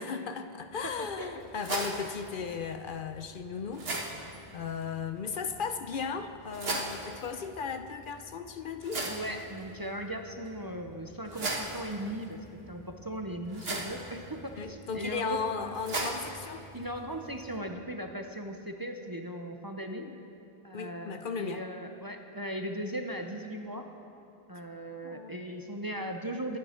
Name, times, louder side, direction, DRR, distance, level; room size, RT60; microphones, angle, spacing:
voice 1, 0.0-9.1 14.6-16.7 19.9-20.3 20.7-21.6 25.0-25.3, left 5 dB, 60° left, 9 dB, 0.7 m, -36 dB
sound 1, 0.6-17.6, right 2 dB, 70° right, 1.8 m, -40 dB
voice 2, 1.0-1.4 9.1-15.8 16.7-20.0 20.6-23.8 24.5-26.6, right 1 dB, 25° right, 4 dB, 0.6 m, -38 dB
23.0 x 8.6 x 4.3 m, 2.7 s
omnidirectional pair, 1.0 m